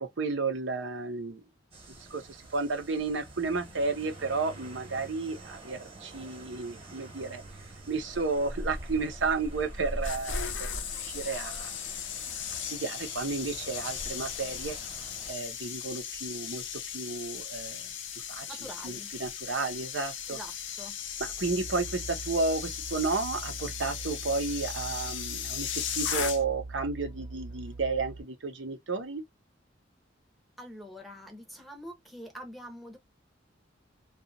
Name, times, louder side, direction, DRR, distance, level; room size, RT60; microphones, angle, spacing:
voice 1, 0.0-1.4 2.0-7.4 7.9-11.8 12.5-14.8 15.3-16.6 16.9-17.9 18.2-18.4 18.8-20.4 21.2-29.2, right 3 dB, 75° right, 0.8 m, -32 dB
sound 1, 1.7-15.3, equal, 30° right, 1.2 m, -43 dB
sound 2, 9.8-26.7 27.0-27.3, left 8 dB, 75° left, 0.6 m, -37 dB
voice 2, 18.5-19.1 20.3-21.0 30.6-33.0, equal, ahead, 0.8 m, -45 dB
sound 3, 21.2-28.2, right 3 dB, 50° right, 1.0 m, -43 dB
2.8 x 2.4 x 2.5 m
head